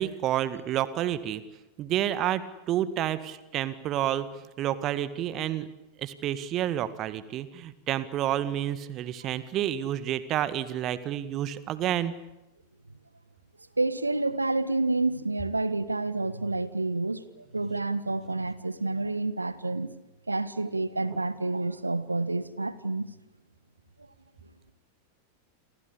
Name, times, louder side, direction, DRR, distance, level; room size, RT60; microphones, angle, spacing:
voice 1, 0.0-1.4 1.8-4.3 4.6-5.7 6.0-12.1, right 12 dB, 35° right, 1.8 m, -29 dB
voice 2, 13.8-19.9 20.3-23.1, right 2 dB, 80° right, 1.5 m, -29 dB
29.5 x 24.0 x 8.5 m
figure-of-eight pair, 90°, 0 cm